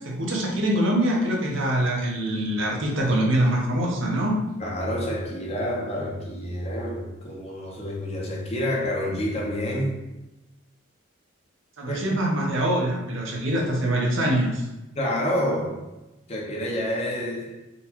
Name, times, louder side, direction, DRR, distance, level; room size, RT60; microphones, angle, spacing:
voice 1, 0.0-4.4 11.8-14.7, right 1 dB, 75° right, -1 dB, 0.7 m, -24 dB
voice 2, 4.6-9.9 11.9-12.0 15.0-15.8 16.3-17.6, equal, 30° left, -3 dB, 0.7 m, -28 dB
3.9 x 2.2 x 2.8 m, 0.98 s
head